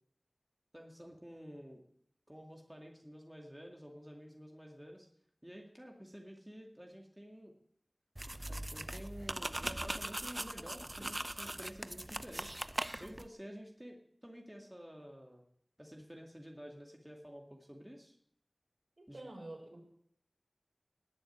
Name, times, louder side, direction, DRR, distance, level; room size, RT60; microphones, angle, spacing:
voice 1, 0.7-1.8 2.3-5.1 5.4-7.5 8.5-12.6 13.0-15.4 15.8-18.2 19.1-19.2, equal, 10° right, 1 dB, 2.2 m, -51 dB
sound 1, 8.2-13.3, right 1 dB, 25° right, 0.7 m, -40 dB
voice 2, 19.0-19.8, right 1 dB, 65° right, 0 dB, 5.9 m, -48 dB
18.5 x 7.0 x 9.4 m, 0.69 s
wide cardioid pair, 60°, 0 cm